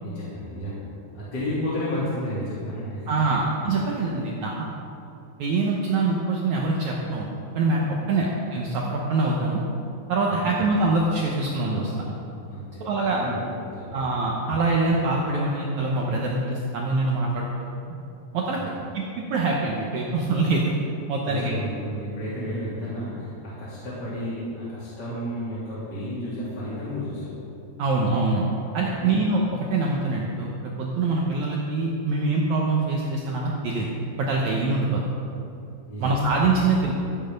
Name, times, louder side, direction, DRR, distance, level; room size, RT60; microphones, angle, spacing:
voice 1, 0.0-3.1 8.0-8.2 10.4-10.5 12.5-14.0 18.6-18.7 21.2-27.3 29.0-29.2 35.9-36.1, equal, 30° left, -10 dB, 3.0 m, -32 dB
voice 2, 3.1-4.6 5.4-7.3 7.5-9.6 10.1-12.1 12.8-13.2 13.9-17.6 18.3-20.7 21.1-21.5 27.8-28.4 28.7-29.4 29.7-33.9 34.2-35.0 36.0-36.9, right 3 dB, 85° right, -2 dB, 1.6 m, -24 dB
13.5 x 8.8 x 5.3 m, 2.8 s
omnidirectional pair, 4.8 m